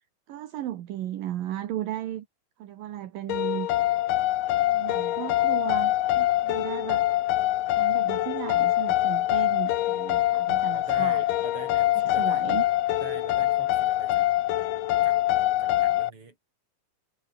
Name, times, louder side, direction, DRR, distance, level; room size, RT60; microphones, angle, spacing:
voice 1, 0.3-2.3 2.6-3.7 4.6-7.0 7.7-11.2 12.1-12.6, right 12 dB, 70° right, 3.0 m, -35 dB
sound 1, 3.3-16.1, left 15 dB, 70° left, 2.4 m, -24 dB
voice 2, 10.7-12.4 12.9-14.3 15.0-15.2 15.6-16.4, right 4 dB, 35° right, 6.0 m, -43 dB
omnidirectional pair, 4.3 m